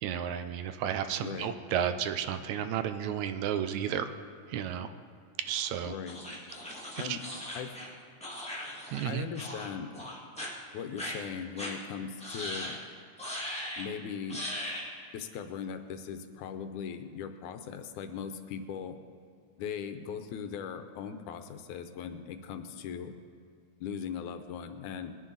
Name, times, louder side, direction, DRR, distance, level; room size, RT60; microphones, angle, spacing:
voice 1, 0.0-4.1 4.5-4.9 5.5-5.9 7.1-7.2 8.9-9.3, right 9 dB, 80° right, 9 dB, 1.8 m, -32 dB
voice 2, 1.2-1.5 5.9-6.2 7.0-7.2 7.6-7.7 9.1-10.0 10.7-12.8 13.8-14.4 15.1-19.0 19.6-23.2 23.8-25.1, left 7 dB, 80° left, 8 dB, 2.1 m, -39 dB
sound 1, 6.1-9.1 9.3-9.7 9.9-10.5 11.0-11.1 11.6-11.7 12.2-12.8 13.2-13.9 14.3-14.9, left 1 dB, 5° left, 1.2 m, -39 dB
21.0 x 10.0 x 3.9 m, 2.3 s
omnidirectional pair, 3.6 m